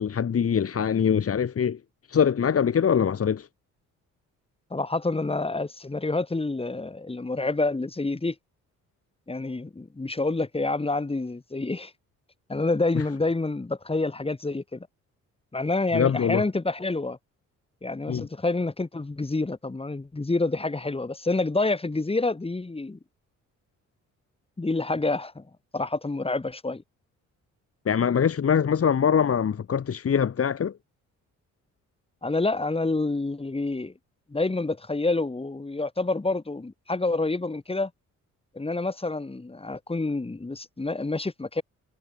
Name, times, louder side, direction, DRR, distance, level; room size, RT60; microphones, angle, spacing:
voice 1, 0.0-1.8 2.1-3.5 12.9-13.0 15.9-16.4 18.1-18.3 27.8-30.7, left 7 dB, 50° left, 4.9 m, -23 dB
voice 2, 4.7-8.4 9.3-11.9 12.5-14.9 15.5-17.2 17.8-23.0 24.6-25.4 25.7-26.8 32.2-33.9 34.3-37.9 38.5-41.6, left 3 dB, 20° left, 5.7 m, -28 dB
cardioid pair, 90°, 30 cm